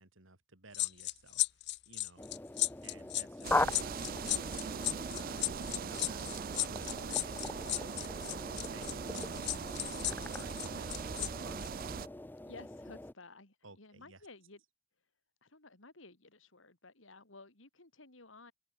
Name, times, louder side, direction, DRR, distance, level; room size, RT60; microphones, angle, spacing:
voice 1, 0.0-1.5 1.9-2.3 2.8-8.2 8.7-11.6 13.6-14.2, right 3 dB, 85° right, 4.1 m, -56 dB
sound 1, 0.7-11.3 11.6-11.8, left 16 dB, 60° left, 0.7 m, -35 dB
sound 2, 2.2-13.1, left 2 dB, 10° left, 0.6 m, -40 dB
sound 3, 3.4-12.1, right 6 dB, 45° right, 0.5 m, -41 dB
voice 2, 12.5-14.6 15.4-18.5, left 3 dB, 75° left, 3.4 m, -55 dB
open air
head